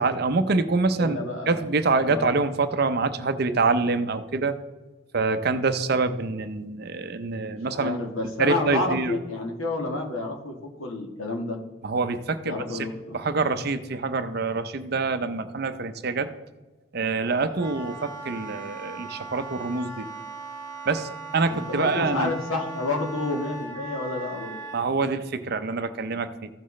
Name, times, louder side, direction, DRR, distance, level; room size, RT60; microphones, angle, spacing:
voice 1, 0.0-1.2 1.5-4.5 5.1-8.0 8.4-9.2 11.8-12.9 13.1-16.3 16.9-20.1 20.9-22.3 24.7-26.5, right 3 dB, 50° right, 10 dB, 0.5 m, -25 dB
voice 2, 0.9-1.6 2.1-2.3 7.5-11.6 12.4-13.2 21.5-24.6, left 2 dB, 75° left, 1 dB, 1.6 m, -30 dB
Wind instrument woodwind instrument, 17.2-24.8, right 3 dB, 20° right, 1.8 m, -38 dB
15.0 x 5.9 x 3.2 m, 1.2 s
head